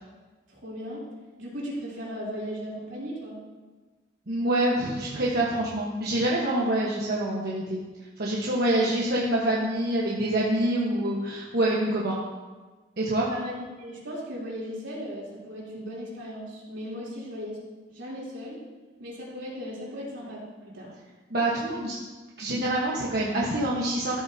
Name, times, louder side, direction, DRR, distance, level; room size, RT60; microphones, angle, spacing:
voice 1, 0.5-1.0 1.4-3.4 13.3-17.6 17.9-18.6 19.0-20.4 20.7-20.9, equal, 80° right, -5 dB, 3.3 m, -37 dB
voice 2, 4.3-7.8 8.2-12.2 13.0-13.3 21.3-22.0 22.4-24.2, right 1 dB, 55° right, -5 dB, 1.2 m, -26 dB
13.5 x 8.0 x 2.8 m, 1.3 s
head